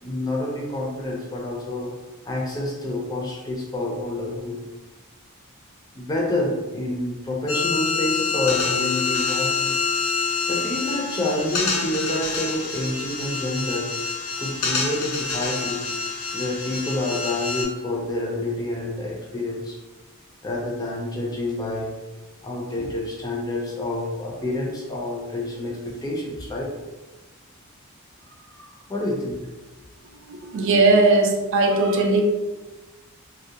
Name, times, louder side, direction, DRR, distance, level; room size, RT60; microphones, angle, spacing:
voice 1, 0.0-1.9 2.3-4.6 5.9-9.7 10.5-13.9 14.4-15.8 16.3-19.8 20.4-21.9 22.4-26.7 28.3-29.4, left 1 dB, 15° left, -2 dB, 0.4 m, -28 dB
sound 1, 7.5-17.6, left 4 dB, 80° left, 0.6 m, -27 dB
voice 2, 30.3-32.2, right 2 dB, 60° right, 2 dB, 0.4 m, -18 dB
2.6 x 2.1 x 2.8 m, 1.2 s
head